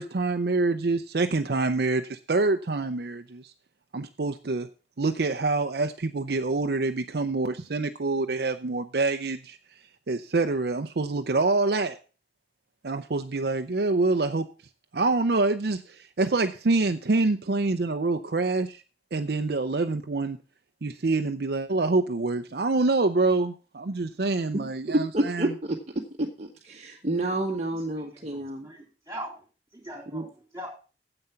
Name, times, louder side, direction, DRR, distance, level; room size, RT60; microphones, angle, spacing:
voice 1, 0.0-3.5 3.9-4.7 5.0-9.6 10.1-12.0 12.8-14.4 14.9-18.8 19.1-20.4 20.8-25.5, right 3 dB, 60° right, 7 dB, 0.6 m, -26 dB
voice 2, 24.9-28.7 30.1-30.2, right 1 dB, 40° right, 1 dB, 1.1 m, -29 dB
voice 3, 28.0-29.4 29.7-30.7, right 1 dB, 15° right, 1 dB, 3.6 m, -41 dB
9.5 x 7.9 x 5.8 m, 0.36 s
head